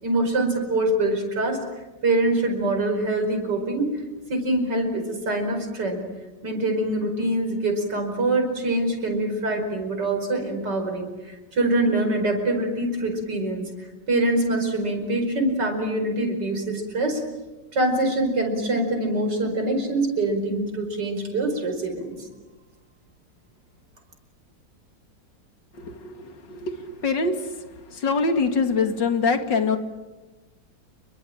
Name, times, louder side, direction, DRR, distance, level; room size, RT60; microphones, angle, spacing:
voice 1, 0.0-1.6 2.0-4.0 4.3-6.0 6.4-17.2 17.7-22.2, right 2 dB, 65° right, 4 dB, 5.6 m, -24 dB
voice 2, 25.8-27.4 27.9-29.8, left 4 dB, 70° left, 6 dB, 3.0 m, -24 dB
29.5 x 23.5 x 8.8 m, 1.1 s
omnidirectional pair, 2.0 m